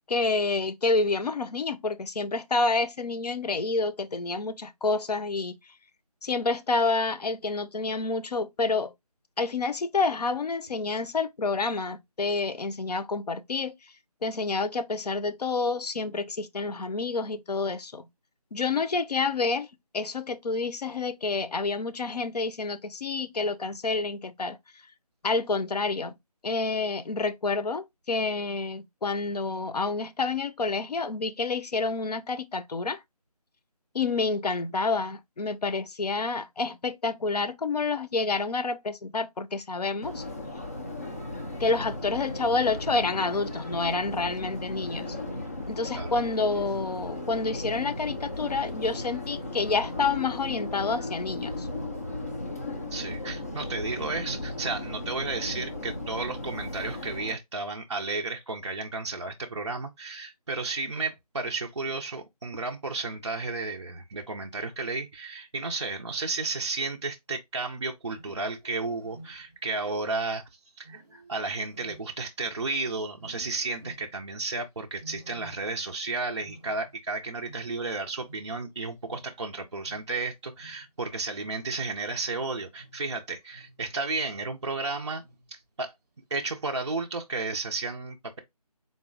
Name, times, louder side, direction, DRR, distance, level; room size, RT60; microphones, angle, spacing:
voice 1, 0.1-5.6 6.2-8.9 9.4-13.7 14.2-18.1 18.5-19.7 19.9-24.6 25.2-26.1 26.4-33.0 33.9-40.2 41.6-45.1 45.7-51.7, left 3 dB, 80° left, 0.6 m, -28 dB
Subway metro underground, 40.0-57.3, left 2 dB, 25° left, 0.5 m, -36 dB
voice 2, 52.9-70.4 70.8-85.2 85.5-85.9 86.3-88.4, right 3 dB, 45° right, 0.5 m, -33 dB
Wild animals, 68.0-69.7 70.8-72.7 73.1-74.3 74.9-76.0 76.3-78.8 79.0-83.9 84.3-84.8 85.2-85.6 86.3-86.8, right 2 dB, 25° right, 0.8 m, -52 dB
3.9 x 2.0 x 3.7 m
figure-of-eight pair, 170°, 20 cm